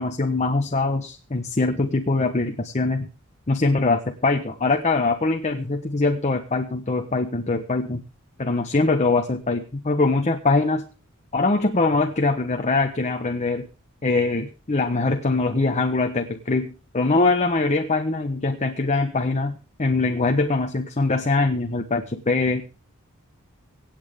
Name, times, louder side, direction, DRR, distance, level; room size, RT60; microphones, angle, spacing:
voice 1, 0.0-3.1 3.5-8.0 8.4-10.8 11.3-13.7 14.0-22.6, left 3 dB, 35° left, 5 dB, 1.1 m, -23 dB
24.5 x 8.7 x 3.6 m, 0.34 s
head